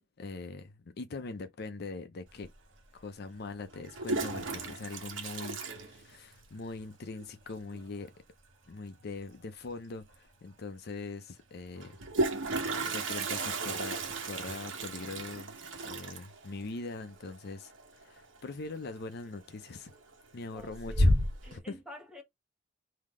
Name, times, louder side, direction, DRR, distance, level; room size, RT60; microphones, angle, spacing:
voice 1, 0.2-2.5 2.9-8.1 8.7-12.0 12.8-15.6 15.8-17.7 18.0-19.9 20.3-21.2 21.5-21.8, left 3 dB, 55° left, 0.5 m, -42 dB
Toilet flush, 2.4-2.5 3.7-6.6 6.8-6.9 7.2-7.3 7.6-8.0 9.7-9.8 10.1-10.2 11.8-18.5 18.7-19.2 19.6-20.1 20.5-21.5, right 1 dB, 85° right, 1.1 m, -33 dB
voice 2, 20.5-21.1 21.4-22.2, left 1 dB, 5° right, 1.3 m, -49 dB
3.7 x 2.8 x 4.8 m
head